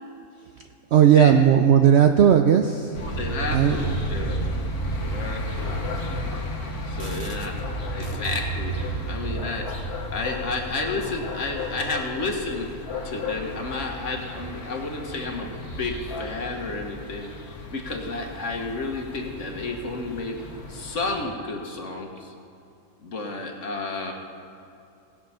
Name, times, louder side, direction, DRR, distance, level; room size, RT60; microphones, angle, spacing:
voice 1, 0.9-2.9 3.5-3.8 6.0-6.3 7.0-7.3 8.0-8.1, right 9 dB, 65° right, 6 dB, 0.6 m, -17 dB
sound 1, 2.9-21.2, equal, 85° left, 2.1 m, -32 dB
voice 2, 3.0-4.4 4.8-5.7 6.9-7.5 7.9-12.7 13.0-20.4 20.7-22.3 23.0-24.1, left 3 dB, 55° left, 2 dB, 1.5 m, -31 dB
18.5 x 6.2 x 5.6 m, 2.7 s
omnidirectional pair, 1.6 m